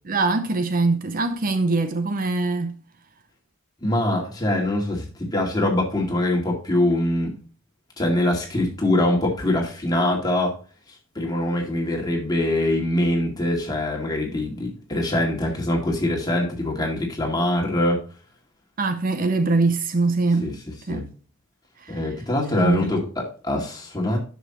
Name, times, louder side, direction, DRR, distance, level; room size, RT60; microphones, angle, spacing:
voice 1, 0.0-2.8 18.8-20.5 20.9-21.1 21.8-22.0 22.6-22.9, right 3 dB, 40° right, 0.7 m, -23 dB
voice 2, 3.8-7.3 8.0-10.6 11.2-18.0 20.4-20.5 20.9-21.1 21.9-24.2, left 1 dB, 20° left, 2.2 m, -23 dB
9.9 x 6.4 x 3.0 m
head